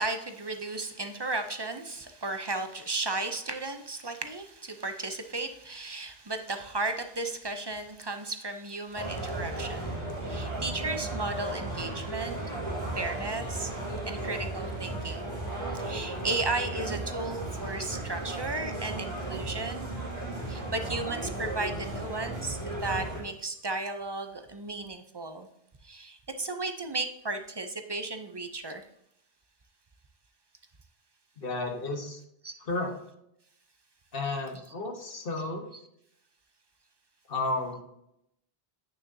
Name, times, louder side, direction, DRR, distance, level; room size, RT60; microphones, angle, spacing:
voice 1, 0.0-12.4 13.0-13.7 14.1-15.3 15.7-19.9 20.5-25.5 25.8-28.8 32.4-32.6, right 2 dB, 30° right, 7 dB, 0.5 m, -34 dB
sound 1, 8.9-23.2, right 2 dB, 15° left, 2.3 m, -35 dB
voice 2, 31.4-32.2 32.6-32.9 34.1-35.6 37.3-37.8, left 2 dB, 65° left, 3 dB, 1.4 m, -32 dB
9.2 x 6.0 x 2.7 m, 0.78 s
omnidirectional pair, 1.0 m